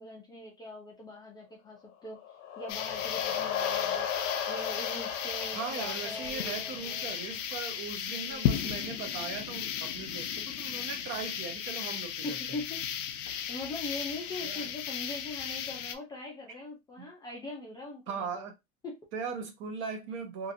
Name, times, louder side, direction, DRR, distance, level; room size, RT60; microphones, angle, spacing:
voice 1, 0.0-2.2 2.6-4.1 4.5-7.2 8.1-8.6 12.2-12.9 13.5-18.4 18.8-19.0, left 2 dB, 10° left, 0.5 m, -42 dB
sound 1, 2.1-7.0, left 8 dB, 35° left, 0.8 m, -35 dB
sound 2, 2.7-16.0, left 9 dB, 80° left, 0.6 m, -35 dB
voice 2, 5.5-12.6 14.4-14.7 17.0-17.1 18.1-18.6 19.1-20.5, right 5 dB, 35° right, 0.6 m, -39 dB
2.8 x 2.5 x 2.5 m
supercardioid pair, 150°, 38 cm